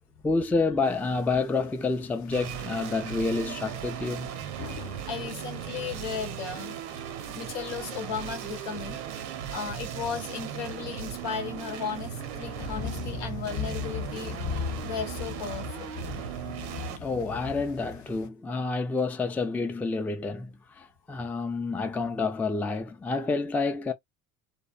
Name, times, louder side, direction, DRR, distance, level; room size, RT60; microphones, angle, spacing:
voice 1, 0.2-4.3 17.0-23.9, left 3 dB, 5° left, 0.3 m, -29 dB
sound 1, 0.8-18.3, left 6 dB, 45° left, 0.6 m, -41 dB
sound 2, 2.3-17.0, right 10 dB, 85° right, 0.7 m, -37 dB
voice 2, 5.1-6.8 7.3-9.0 9.5-15.9, left 7 dB, 80° left, 1.0 m, -36 dB
2.5 x 2.0 x 2.3 m
hypercardioid pair, 70°, 41 cm